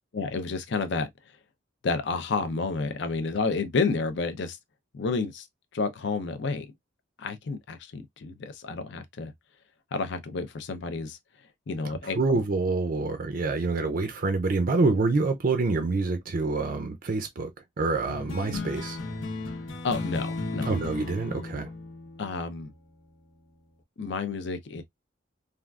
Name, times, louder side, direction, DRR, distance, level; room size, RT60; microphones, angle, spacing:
voice 1, 0.1-1.1 1.8-4.6 4.9-5.5 5.7-6.7 7.2-9.3 9.9-11.2 11.7-12.4 19.8-20.7 22.2-22.7 24.0-24.8, left 4 dB, 60° left, 0.5 m, -30 dB
voice 2, 12.2-17.5 17.8-19.0 20.7-21.7, right 3 dB, 45° right, 0.4 m, -26 dB
sound 1, 18.1-23.0, left 3 dB, 80° left, 0.9 m, -35 dB
3.5 x 2.3 x 2.3 m
head